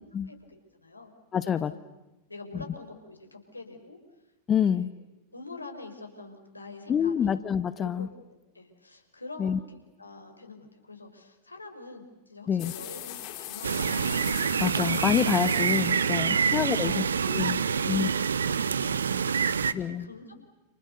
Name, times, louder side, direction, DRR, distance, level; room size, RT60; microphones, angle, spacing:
voice 1, 0.7-1.1 1.4-1.8 2.3-4.0 4.7-4.9 5.3-7.4 7.8-8.1 8.5-14.1 16.0-17.1 17.7-20.4, left 3 dB, 80° left, 5 dB, 5.5 m, -45 dB
voice 2, 1.3-1.7 2.5-2.6 4.5-4.9 6.9-8.1 9.4-9.6 12.5-12.7 14.6-17.6 17.9-18.1 19.7-20.1, left 8 dB, 25° left, 13 dB, 1.1 m, -27 dB
sound 1, 12.6-17.5, left 13 dB, 40° left, 5.6 m, -41 dB
sound 2, 13.6-19.7, right 6 dB, 70° right, 1.2 m, -26 dB
30.0 x 29.5 x 6.8 m, 1.0 s
figure-of-eight pair, 90°, 0 cm